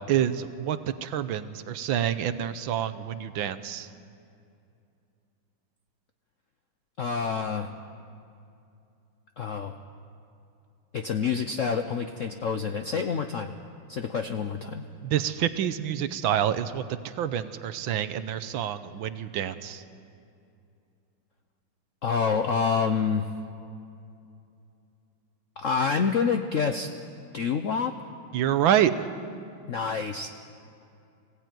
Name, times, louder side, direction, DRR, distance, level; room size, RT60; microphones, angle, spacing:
voice 1, 0.1-3.9 15.0-19.8 28.3-28.9, right 10 dB, 70° right, 12 dB, 1.5 m, -27 dB
voice 2, 7.0-7.7 9.4-9.8 10.9-13.5 13.9-14.8 22.0-23.3 25.6-26.9 27.3-27.9 29.7-30.3, left 5 dB, 65° left, 7 dB, 0.7 m, -27 dB
22.5 x 16.5 x 9.2 m, 2.6 s
omnidirectional pair, 2.3 m